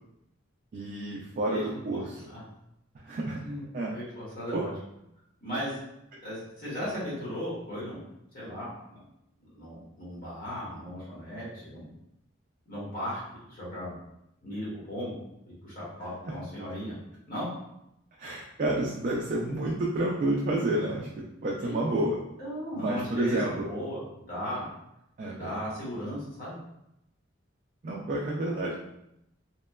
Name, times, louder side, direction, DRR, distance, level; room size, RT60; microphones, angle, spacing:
voice 1, 0.7-2.3 3.0-3.4 3.7-3.9 4.5-4.6 16.2-16.3 18.2-22.2 22.7-23.7 25.2-25.6 27.8-28.8, right 1 dB, 40° right, -3 dB, 0.3 m, -30 dB
voice 2, 3.4-4.7 5.4-5.8 6.2-8.0 8.3-9.0 9.4-11.9 12.7-13.2 13.5-13.9 14.4-17.0 17.3-17.5 21.6-21.8 22.4-24.0 24.3-24.7 25.3-26.6, equal, 45° left, -8 dB, 1.1 m, -36 dB
2.9 x 2.1 x 2.2 m, 0.83 s
head